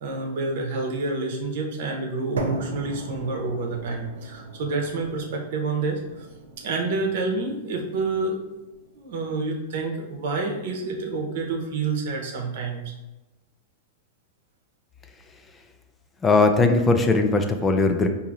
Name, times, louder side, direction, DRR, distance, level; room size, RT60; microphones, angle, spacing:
voice 1, 0.0-6.2 6.6-8.4 8.9-12.8, right 3 dB, 65° right, 1 dB, 0.8 m, -28 dB
sound 1, 2.4-10.4, right 3 dB, 90° right, 0.6 m, -38 dB
voice 2, 16.2-18.1, left 3 dB, 20° left, 6 dB, 0.4 m, -19 dB
4.6 x 2.7 x 2.6 m, 1.0 s
hypercardioid pair, 110°, 0 cm